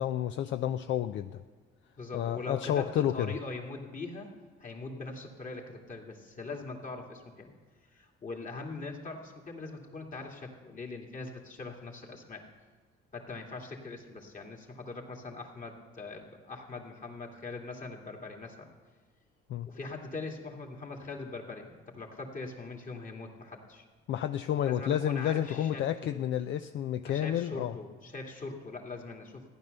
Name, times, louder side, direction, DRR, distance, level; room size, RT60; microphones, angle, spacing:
voice 1, 0.0-1.4 2.1-3.3 19.5-19.7 24.1-27.8, left 11 dB, 70° left, 9 dB, 0.5 m, -30 dB
voice 2, 2.0-4.3 4.6-7.5 7.9-12.4 13.1-18.7 19.7-23.9 24.7-26.2 27.0-29.4, left 3 dB, 40° left, 1 dB, 2.5 m, -42 dB
14.5 x 10.5 x 6.7 m, 1.4 s
cardioid pair, 85°, 20 cm